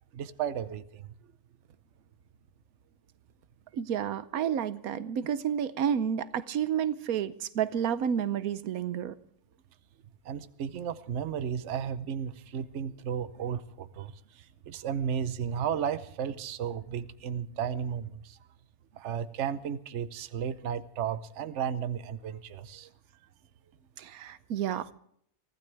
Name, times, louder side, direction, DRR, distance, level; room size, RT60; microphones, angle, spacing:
voice 1, 0.1-1.1 10.2-18.4 18.9-22.9, right 8 dB, 60° right, 1.1 m, -34 dB
voice 2, 3.7-9.2 24.0-24.9, right 8 dB, 90° right, 1.3 m, -30 dB
24.0 x 15.5 x 3.4 m
omnidirectional pair, 1.5 m